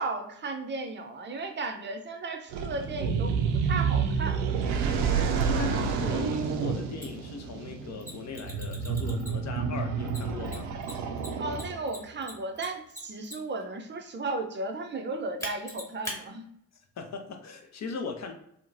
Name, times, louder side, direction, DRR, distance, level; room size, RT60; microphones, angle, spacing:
voice 1, 0.0-4.4 6.0-6.2 11.4-16.5, right 3 dB, 25° right, 4 dB, 0.6 m, -35 dB
sound 1, 2.5-12.0, right 6 dB, 70° right, 0.6 m, -29 dB
voice 2, 5.4-10.7 17.0-18.3, left 4 dB, 35° left, 3 dB, 0.6 m, -38 dB
Mechanisms, 7.0-7.1 8.0-9.6 10.1-13.6 15.4-16.2, left 1 dB, 5° left, 1.3 m, -40 dB
2.8 x 2.1 x 2.5 m, 0.72 s
hypercardioid pair, 50°, 46 cm